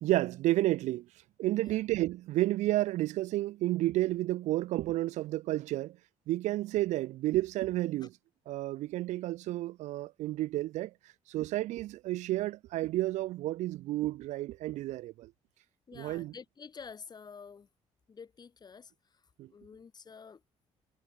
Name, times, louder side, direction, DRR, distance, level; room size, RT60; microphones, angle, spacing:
voice 1, 0.0-1.1 1.4-6.0 6.3-8.1 8.5-10.9 11.3-15.3 16.0-16.3 19.4-19.5, right 16 dB, 75° right, 0.4 m, -31 dB
voice 2, 15.9-17.7 18.1-20.4, left 6 dB, 35° left, 1.4 m, -49 dB
cardioid pair, 95°, 12 cm